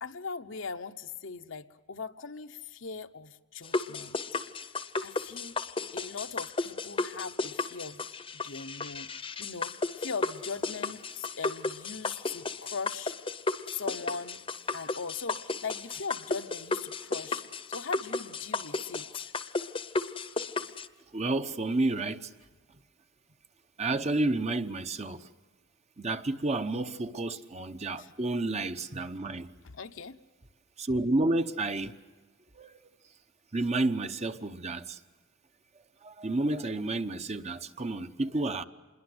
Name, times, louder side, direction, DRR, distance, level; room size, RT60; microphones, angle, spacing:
voice 1, 0.0-4.2 5.0-5.6 5.9-8.1 8.3-9.1 9.4-13.1 13.7-14.4 14.7-19.3 28.0-28.1 29.6-30.2, left 5 dB, 70° left, 1.0 m, -40 dB
sound 1, 3.6-20.9, left 3 dB, 25° left, 0.9 m, -34 dB
voice 2, 21.1-22.3 23.8-25.3 26.0-29.5 30.8-32.0 32.5-32.8 33.5-35.0 36.0-38.6, right 2 dB, 35° right, 0.9 m, -30 dB
27.0 x 22.0 x 7.9 m
head